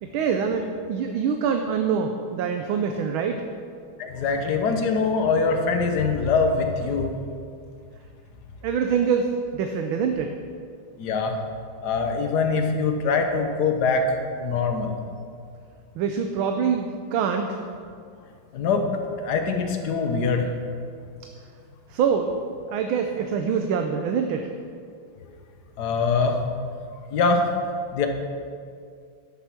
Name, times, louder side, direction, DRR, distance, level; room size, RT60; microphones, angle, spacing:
voice 1, 0.0-3.4 8.6-10.3 16.0-17.6 21.9-22.3 22.7-24.5, right 6 dB, 85° right, 5 dB, 1.6 m, -25 dB
voice 2, 4.0-7.1 11.0-11.3 11.8-14.0 14.4-14.9 18.5-18.8 19.2-20.4 25.8-26.4 27.1-27.4 27.9-28.1, left 4 dB, 55° left, 4 dB, 1.6 m, -23 dB
12.0 x 8.1 x 6.0 m, 2.3 s
omnidirectional pair, 2.2 m